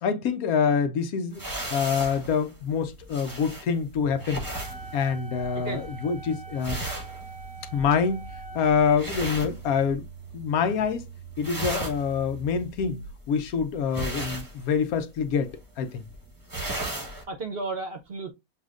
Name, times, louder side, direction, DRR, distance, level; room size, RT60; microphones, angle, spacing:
voice 1, 0.0-1.4 1.7-4.5 4.9-6.8 7.7-10.0 10.3-11.1 11.4-16.0, left 6 dB, 80° left, 1.2 m, -26 dB
sound 1, 1.3-10.3 10.6-11.0 11.3-17.2, right 1 dB, 15° right, 0.9 m, -36 dB
sound 2, 4.0-13.2, right 7 dB, 55° left, 1.7 m, -44 dB
Wind instrument woodwind instrument, 4.4-8.6, right 2 dB, 35° left, 1.6 m, -44 dB
voice 2, 5.5-5.9 16.7-18.3, right 3 dB, 50° right, 0.9 m, -35 dB
7.1 x 2.4 x 2.4 m
omnidirectional pair, 1.5 m